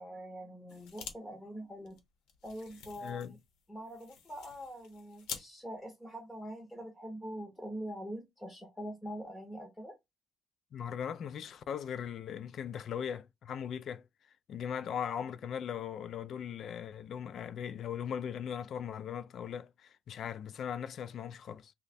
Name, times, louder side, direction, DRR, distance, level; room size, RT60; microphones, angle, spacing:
voice 1, 0.0-2.0 2.4-3.4 3.7-9.9, equal, 5° left, 0.7 m, -44 dB
sound 1, 0.7-1.2 1.5-1.6 1.9-5.5, left 7 dB, 80° left, 0.8 m, -47 dB
voice 2, 3.0-3.3 10.7-14.0 14.5-21.7, left 8 dB, 45° left, 0.3 m, -39 dB
3.2 x 2.2 x 4.0 m
cardioid pair, 165°, 0 cm